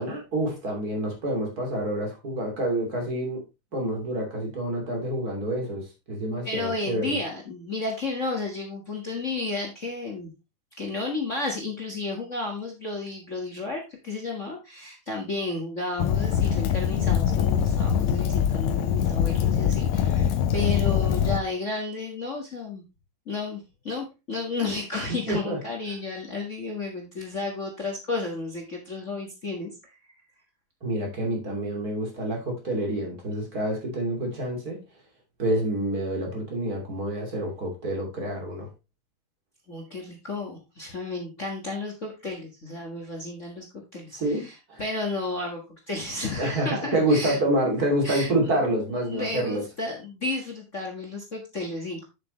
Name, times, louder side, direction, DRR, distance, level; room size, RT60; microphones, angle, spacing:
voice 1, 0.0-3.4 3.7-7.2 25.3-25.6 30.8-34.8 35.4-38.7 44.1-44.8 46.4-49.6, right 1 dB, 25° right, 1 dB, 2.9 m, -27 dB
voice 2, 6.4-10.3 10.7-22.8 23.3-30.0 39.7-47.4 48.0-48.3 49.1-52.0, left 3 dB, 65° left, 1 dB, 0.7 m, -32 dB
Fire, 16.0-21.4, left 8 dB, 85° left, 1.6 m, -23 dB
8.8 x 7.3 x 3.1 m, 0.26 s
omnidirectional pair, 4.1 m